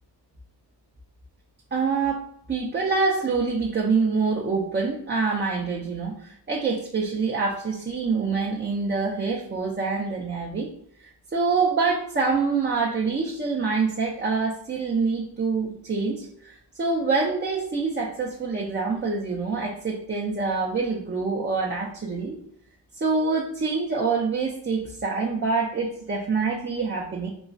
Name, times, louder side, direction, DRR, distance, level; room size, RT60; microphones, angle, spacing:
voice 1, 1.7-2.2 2.5-10.7 11.0-22.4 23.0-27.3, right 4 dB, 25° right, -3 dB, 0.4 m, -26 dB
3.0 x 2.3 x 2.5 m, 0.69 s
cardioid pair, 70°, 42 cm